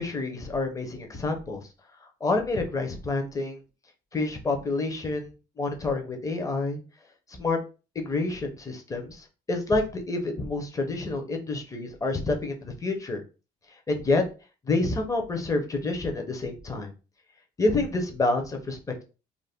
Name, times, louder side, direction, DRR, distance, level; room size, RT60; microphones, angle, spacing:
voice 1, 0.0-1.6 2.2-3.6 4.1-6.8 7.3-7.6 7.9-13.2 13.9-14.2 14.7-16.9 17.6-19.0, left 3 dB, 20° left, 4 dB, 0.7 m, -28 dB
2.6 x 2.1 x 3.4 m, 0.32 s
cardioid pair, 110°, 17 cm